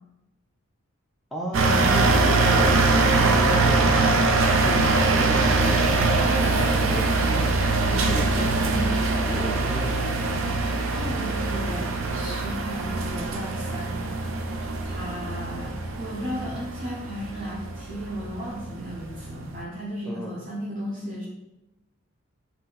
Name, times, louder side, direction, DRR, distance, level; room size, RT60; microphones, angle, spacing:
voice 1, 1.3-4.4 4.6-10.0 20.1-20.4, equal, ahead, -2 dB, 0.4 m, -34 dB
sound 1, 1.5-19.6, right 3 dB, 70° right, 0.5 m, -23 dB
voice 2, 3.1-3.9 6.1-6.8 8.3-9.0 11.0-14.3 14.8-21.2, equal, 40° right, -6 dB, 0.8 m, -35 dB
4.1 x 2.8 x 4.0 m, 0.98 s
head